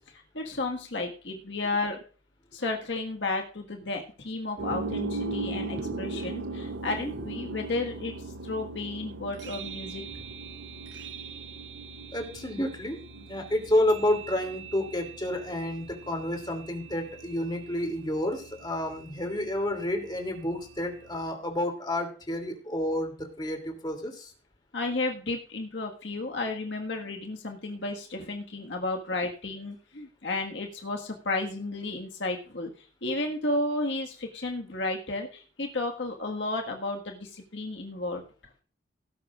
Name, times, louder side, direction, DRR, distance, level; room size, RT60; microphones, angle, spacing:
voice 1, 0.3-2.0 2.5-10.0 24.7-38.2, left 2 dB, 70° left, 2 dB, 1.7 m, -33 dB
sound 1, 4.6-21.2, right 3 dB, 70° right, 0.8 m, -39 dB
voice 2, 5.9-6.2 12.1-24.3, left 1 dB, 25° left, 3 dB, 2.8 m, -30 dB
18.5 x 10.5 x 2.5 m, 0.40 s
head